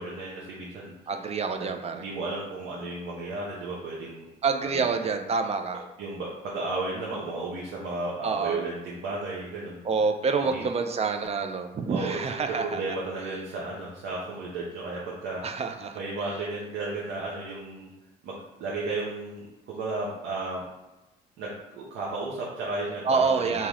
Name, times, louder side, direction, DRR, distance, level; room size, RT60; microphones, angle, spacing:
voice 1, 0.0-1.3 1.6-1.7 1.9-4.3 4.6-5.0 6.0-9.8 10.4-10.6 11.9-12.2 12.5-15.7 15.9-17.9 18.2-20.6 21.4-23.7, right 2 dB, 65° right, -5 dB, 0.8 m, -34 dB
voice 2, 1.1-2.0 4.4-5.8 8.2-8.6 9.8-12.6 15.4-16.0 23.0-23.7, right 4 dB, 30° right, 6 dB, 0.5 m, -27 dB
3.6 x 2.8 x 3.0 m, 1.0 s
supercardioid pair, 70°, 20 cm